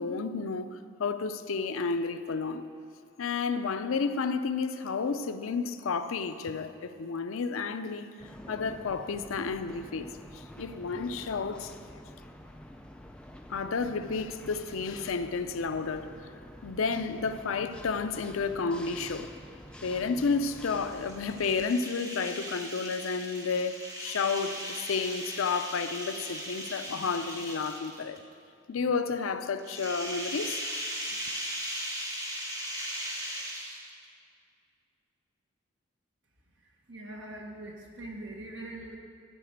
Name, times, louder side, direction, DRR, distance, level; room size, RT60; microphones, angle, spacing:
voice 1, 0.0-2.7 3.2-8.1 8.5-11.8 13.5-16.1 16.6-19.3 19.8-28.2 28.7-30.6, left 4 dB, 90° left, 0.5 m, -31 dB
sound 1, 8.2-21.7, left 1 dB, 5° left, 0.4 m, -47 dB
sound 2, 20.4-28.2 29.6-34.0, equal, 15° right, 1.4 m, -38 dB
voice 2, 36.6-39.0, right 1 dB, 65° right, 1.5 m, -42 dB
13.0 x 5.0 x 8.0 m
head